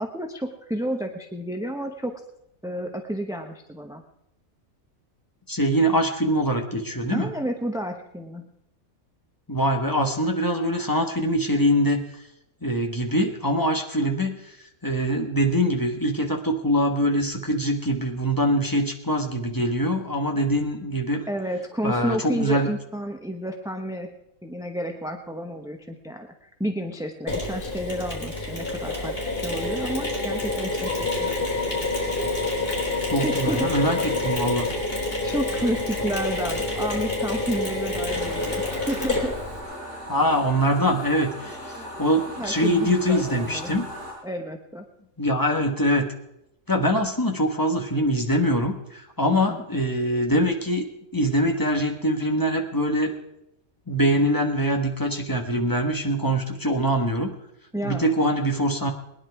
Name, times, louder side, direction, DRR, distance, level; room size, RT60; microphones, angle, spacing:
voice 1, 0.0-2.2 2.6-4.0 7.1-8.5 21.3-24.1 24.4-31.3 33.2-33.9 35.2-39.3 41.8-41.9 42.4-43.7 44.2-44.8 49.3-49.6 57.7-58.1, equal, 5° right, 4 dB, 0.7 m, -31 dB
voice 2, 5.5-7.3 9.5-12.0 12.6-14.6 14.8-21.2 21.8-22.7 33.1-34.6 40.1-43.9 45.2-46.1 46.7-50.9 51.1-53.1 53.9-57.3 57.8-58.9, equal, 15° left, 2 dB, 1.3 m, -23 dB
Mechanisms, 27.3-39.6, left 2 dB, 45° left, 3.9 m, -27 dB
sound 1, 38.1-44.1, equal, 75° right, 7.3 m, -38 dB
20.5 x 10.5 x 4.7 m, 0.82 s
omnidirectional pair, 1.4 m